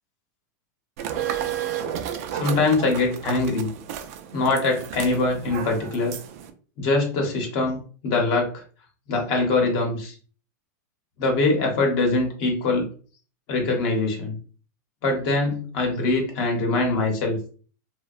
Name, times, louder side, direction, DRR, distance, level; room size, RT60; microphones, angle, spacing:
sound 1, 1.0-6.5, right 9 dB, 55° right, 0.3 m, -32 dB
voice 1, 2.3-3.7 4.3-6.2 6.8-8.5 9.1-10.2 11.2-12.8 13.5-14.4 15.0-17.4, left 3 dB, 40° left, 1 dB, 0.8 m, -23 dB
2.7 x 2.1 x 2.4 m, 0.40 s
supercardioid pair, 155°, 10 cm